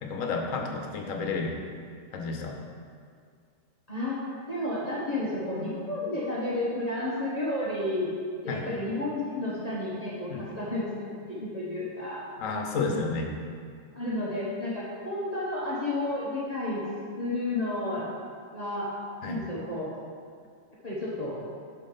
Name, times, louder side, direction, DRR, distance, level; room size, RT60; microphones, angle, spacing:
voice 1, 0.0-1.5 2.1-2.6 8.5-8.7 10.3-10.4 12.4-13.3 19.2-19.4, left 4 dB, 90° left, 2 dB, 1.2 m, -31 dB
voice 2, 3.9-4.2 4.5-8.1 8.4-12.2 13.9-16.9 17.1-18.1 18.5-18.9 19.2-19.9 20.8-21.4, left 1 dB, 35° left, -8 dB, 1.0 m, -31 dB
5.3 x 4.7 x 5.5 m, 2.2 s
omnidirectional pair, 1.3 m